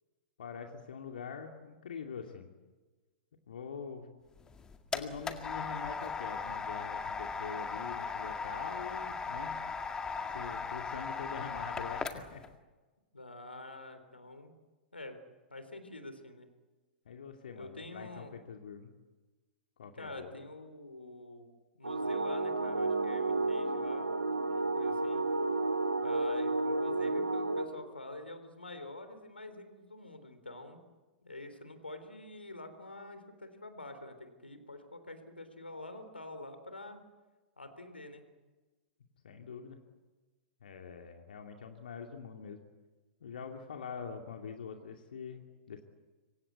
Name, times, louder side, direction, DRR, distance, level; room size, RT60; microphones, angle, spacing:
voice 1, 0.4-2.5 3.5-4.1 4.9-9.6 10.3-12.4 17.1-18.9 19.8-20.3 39.2-39.8 40.6-42.6 43.2-45.8, left 6 dB, 60° left, 3 dB, 2.5 m, -44 dB
sound 1, 4.4-12.5, left 5 dB, 15° left, 1.9 m, -38 dB
voice 2, 13.1-14.5 14.9-15.2 15.5-16.5 17.5-18.4 19.9-21.5 21.8-25.2 26.0-30.8 31.2-37.0 37.6-38.2, left 2 dB, 80° left, 9 dB, 3.6 m, -47 dB
sound 2, 21.8-27.6, right 2 dB, 80° right, 2.8 m, -31 dB
26.5 x 24.0 x 8.3 m, 1.3 s
figure-of-eight pair, 105°, 6 cm